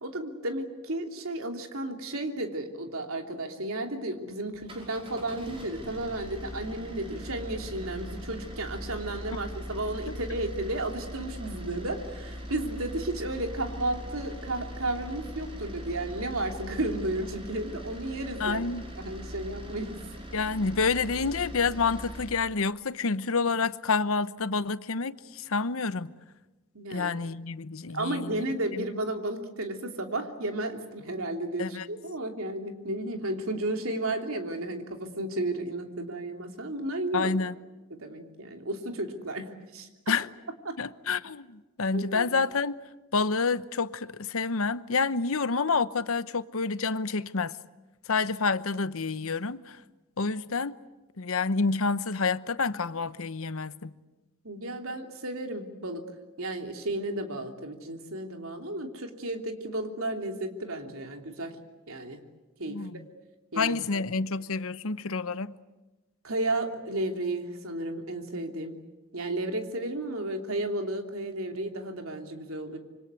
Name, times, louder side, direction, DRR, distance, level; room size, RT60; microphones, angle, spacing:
voice 1, 0.0-18.7 19.0-19.9 26.7-27.1 27.9-37.4 37.9-39.9 40.6-40.8 41.9-42.3 54.4-56.0 56.4-61.6 61.9-62.2 62.6-63.0 63.5-63.7 66.2-68.8 69.1-72.8, right 1 dB, 75° right, 3.0 m, -33 dB
sound 1, 4.5-22.4, equal, 25° right, 5.5 m, -41 dB
voice 2, 18.4-18.9 20.3-26.1 26.9-28.4 31.6-31.9 37.1-37.5 40.1-40.3 40.8-42.8 43.1-47.5 48.1-49.8 50.2-50.8 51.2-53.9 62.7-63.0 63.6-65.5, left 4 dB, 75° left, 0.9 m, -28 dB
26.5 x 25.0 x 8.2 m
head